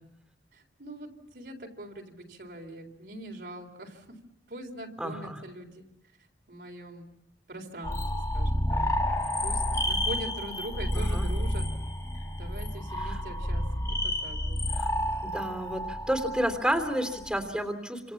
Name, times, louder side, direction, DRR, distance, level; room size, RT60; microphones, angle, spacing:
voice 1, 0.5-4.2 4.5-5.8 6.5-7.1 7.5-8.0 8.3-8.9 9.4-11.7 12.4-14.7, right 1 dB, 60° right, 2 dB, 3.9 m, -42 dB
voice 2, 5.0-5.4 10.9-11.3 13.0-13.2 14.7-14.9 15.2-18.1, equal, 5° right, 5 dB, 3.2 m, -31 dB
sound 1, 7.8-17.5, left 1 dB, 15° left, 1.8 m, -30 dB
28.5 x 27.0 x 7.3 m, 0.81 s
head